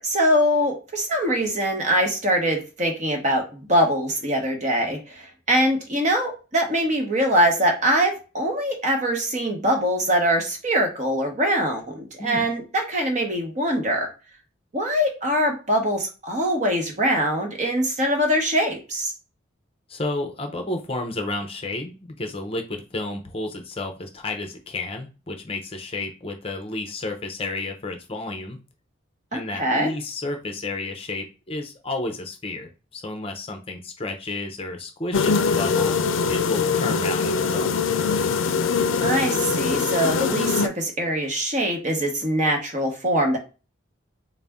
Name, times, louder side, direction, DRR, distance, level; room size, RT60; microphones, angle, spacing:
voice 1, 0.0-14.1 14.7-19.1 29.3-29.9 39.0-43.4, equal, 35° right, 2 dB, 1.0 m, -23 dB
voice 2, 19.9-28.6 29.3-36.0 36.3-37.7, left 2 dB, 30° left, 5 dB, 0.6 m, -31 dB
sound 1, 35.1-40.7, left 5 dB, 85° left, 0.4 m, -22 dB
4.0 x 2.1 x 3.5 m, 0.33 s
head